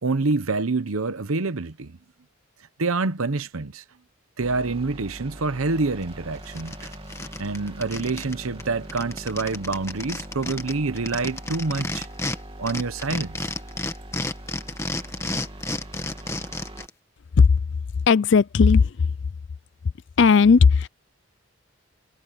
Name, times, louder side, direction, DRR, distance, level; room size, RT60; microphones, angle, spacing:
voice 1, 0.0-2.0 2.8-3.8 4.4-6.9 7.4-12.1 12.6-13.5, right 3 dB, 85° right, 0.9 m, -27 dB
sound 1, 4.4-16.9, right 1 dB, 25° right, 2.6 m, -41 dB
sound 2, 6.0-6.1 6.4-8.3 8.6-8.7 8.9-12.4 12.7-16.9, left 2 dB, 15° left, 1.5 m, -31 dB
voice 2, 18.1-19.0 20.2-20.9, left 5 dB, 55° left, 0.4 m, -15 dB
head